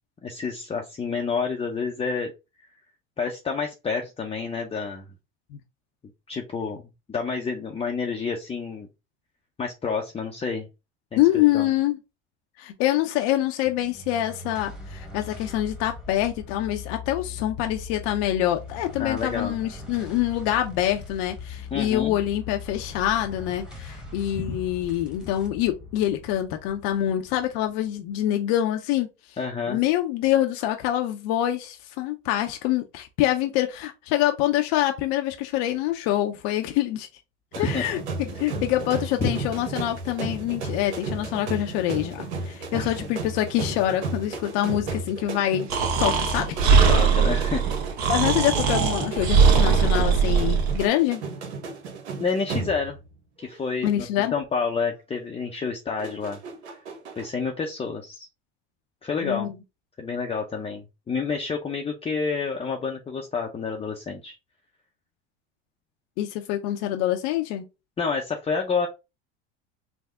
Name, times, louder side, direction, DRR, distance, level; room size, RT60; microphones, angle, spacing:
voice 1, 0.2-2.3 3.2-5.1 6.3-6.8 7.1-8.9 9.6-10.7 11.1-11.2 11.5-11.7 19.0-19.6 21.7-22.2 24.3-24.6 29.4-29.8 37.6-37.8 39.2-39.3 42.7-42.9 46.9-47.6 52.2-53.0 53.4-54.1 54.3-56.4 57.2-58.3 59.0-59.5 60.0-64.4 68.0-68.9, left 5 dB, 20° left, 0.5 m, -29 dB
voice 2, 11.2-12.0 12.6-29.4 29.7-37.1 37.6-45.7 46.0-46.6 48.1-51.2 53.8-54.3 59.2-59.5 66.2-67.6, left 13 dB, 65° left, 0.6 m, -25 dB
sound 1, 13.7-28.2, left 3 dB, ahead, 1.1 m, -40 dB
sound 2, 37.5-53.1 53.4-53.8 56.0-57.3, right 3 dB, 85° right, 0.9 m, -34 dB
Breathing, 45.7-50.8, right 5 dB, 55° right, 1.0 m, -20 dB
3.5 x 2.0 x 3.4 m
supercardioid pair, 90°, 33 cm